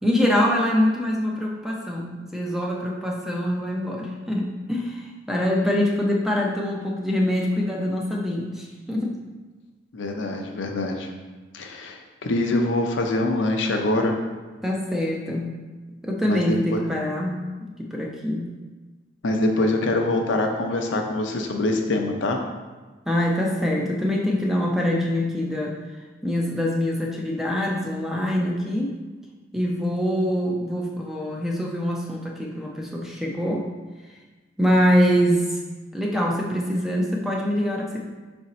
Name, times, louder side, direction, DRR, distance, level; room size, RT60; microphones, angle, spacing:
voice 1, 0.0-9.2 14.6-15.5 16.0-18.5 23.1-25.8 26.2-29.0 29.5-33.7 34.6-35.6 35.9-38.0, equal, ahead, -2 dB, 0.4 m, -24 dB
voice 2, 9.9-11.1 11.5-14.1 16.2-16.8 19.2-22.4, left 2 dB, 85° left, 2 dB, 0.6 m, -24 dB
4.8 x 2.6 x 4.1 m, 1.3 s
head